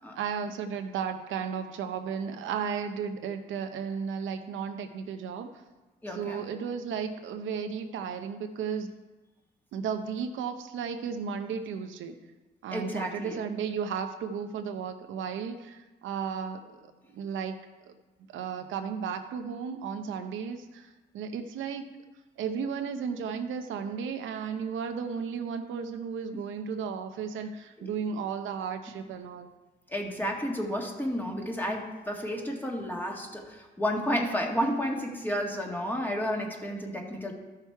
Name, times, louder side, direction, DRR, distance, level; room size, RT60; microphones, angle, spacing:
voice 1, 0.0-5.6 6.1-9.0 9.7-12.2 12.6-16.8 17.1-17.6 17.8-17.9 18.3-22.0 22.4-29.5, right 6 dB, 80° right, 7 dB, 0.7 m, -34 dB
voice 2, 6.0-6.5 12.7-13.4 26.3-26.4 27.8-27.9 29.9-37.3, equal, 10° left, 0 dB, 1.8 m, -31 dB
13.0 x 5.8 x 4.6 m, 1.2 s
cardioid pair, 90°, 20 cm